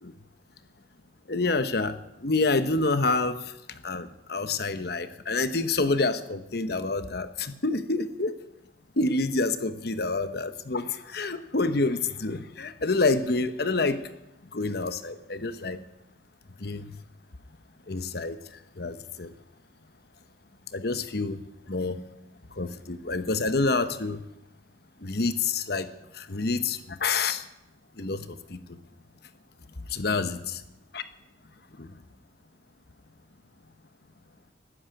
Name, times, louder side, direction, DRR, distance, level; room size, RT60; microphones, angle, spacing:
voice 1, 1.3-8.3 9.0-14.0 14.5-15.8 16.6-17.0 17.9-18.4 18.8-19.3 20.7-22.0 22.5-24.2 25.0-27.4 28.0-28.6 29.9-30.6 30.9-31.0 31.8-31.9, left 3 dB, 55° left, 11 dB, 1.0 m, -28 dB
12.5 x 10.0 x 9.1 m, 0.91 s
head